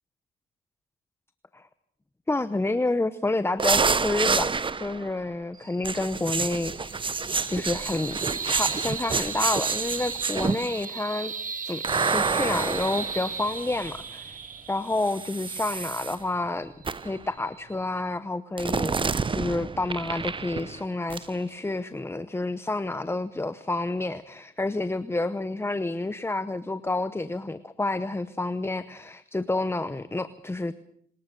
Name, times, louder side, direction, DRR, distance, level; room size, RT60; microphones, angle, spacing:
voice 1, 2.3-4.5 4.8-7.0 7.5-11.3 11.6-11.8 12.1-14.4 14.7-16.7 17.0-30.7, left 2 dB, 10° left, 14 dB, 0.9 m, -29 dB
sound 1, 3.6-5.1 5.8-10.8 11.8-14.0 15.0-16.2 16.8-17.2 18.6-20.8 21.1-21.3, right 4 dB, 25° right, 0.9 m, -28 dB
sound 2, 5.5-18.2, right 5 dB, 40° right, 1.7 m, -38 dB
24.5 x 19.5 x 6.7 m, 0.65 s
cardioid pair, 90°, 20 cm